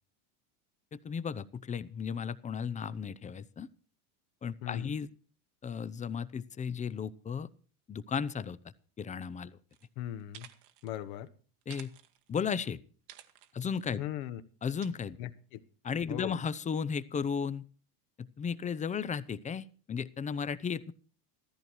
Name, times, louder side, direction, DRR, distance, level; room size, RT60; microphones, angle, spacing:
voice 1, 0.9-3.7 4.4-5.1 5.6-7.5 7.9-8.6 9.0-9.6 11.7-11.9 12.3-12.8 13.5-14.0 14.6-15.2 15.8-17.6 18.2-20.9, left 6 dB, 15° left, 16 dB, 0.6 m, -35 dB
voice 2, 4.6-5.0 10.0-10.5 10.8-11.3 14.0-14.4 15.2-15.6 16.1-16.4, left 12 dB, 65° left, 11 dB, 1.4 m, -39 dB
sound 1, 9.7-9.9 10.2-10.9 11.6-12.5 13.1-13.8 14.8-14.9, right 12 dB, 80° right, 1.7 m, -53 dB
15.0 x 14.0 x 4.5 m, 0.41 s
supercardioid pair, 125°, 46 cm